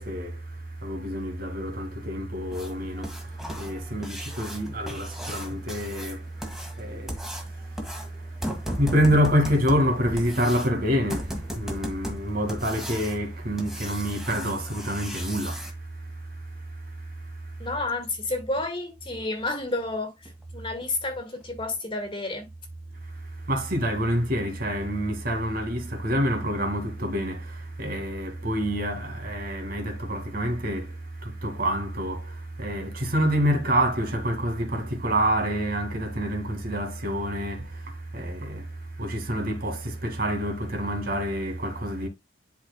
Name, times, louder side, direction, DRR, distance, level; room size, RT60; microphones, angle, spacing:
voice 1, 0.0-17.7 23.0-42.1, equal, 55° right, 1.9 m, -28 dB
sound 1, 2.5-15.7 18.0-18.1 18.6-18.7 19.1-19.2 19.7-19.8 20.3-20.4 20.8-20.9 21.4-21.5, equal, ahead, 1.7 m, -37 dB
voice 2, 17.6-20.1 20.5-22.5, left 2 dB, 30° left, 1.7 m, -30 dB
11.5 x 4.3 x 2.2 m
head